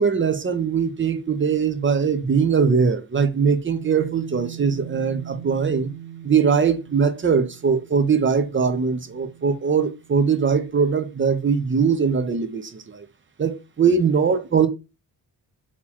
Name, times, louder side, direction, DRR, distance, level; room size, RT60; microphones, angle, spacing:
voice 1, 0.0-5.9 6.2-13.1 13.4-14.7, right 6 dB, 30° right, 0.6 m, -21 dB
sound 1, 3.8-10.5, right 11 dB, 75° right, 0.8 m, -41 dB
3.8 x 2.8 x 4.5 m
wide cardioid pair, 120°, 41 cm